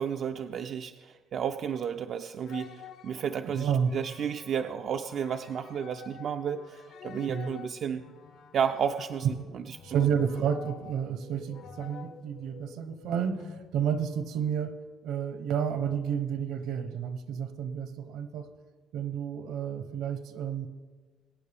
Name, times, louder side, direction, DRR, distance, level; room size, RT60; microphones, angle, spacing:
voice 1, 0.0-8.0 8.5-10.1, right 7 dB, 45° right, 6 dB, 0.4 m, -32 dB
sound 1, 2.5-13.7, left 7 dB, 60° left, 0.8 m, -49 dB
voice 2, 3.5-3.9 7.3-7.5 9.8-14.7 15.0-18.5 18.9-20.7, right 8 dB, 70° right, 10 dB, 1.0 m, -30 dB
22.0 x 9.3 x 3.5 m, 1.4 s
cardioid pair, 170°, 0 cm